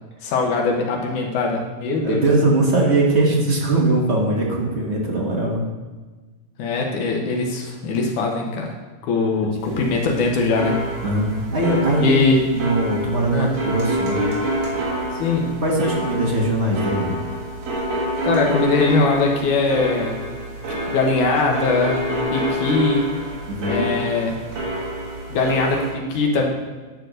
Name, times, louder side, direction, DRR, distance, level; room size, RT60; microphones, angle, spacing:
voice 1, 0.2-2.2 6.6-8.7 9.1-10.8 12.0-12.4 13.3-13.5 15.2-15.5 18.2-20.2 20.9-22.0 22.3-23.1 23.7-24.4 25.3-26.5, left 3 dB, 90° left, 0 dB, 2.7 m, -21 dB
voice 2, 2.0-5.7 9.6-9.8 11.0-12.2 12.5-14.3 15.6-17.1 23.5-23.9, right 2 dB, 40° right, -2 dB, 0.9 m, -21 dB
sound 1, 9.6-25.9, equal, 65° right, 3.0 m, -27 dB
10.0 x 4.7 x 6.4 m, 1.3 s
omnidirectional pair, 3.4 m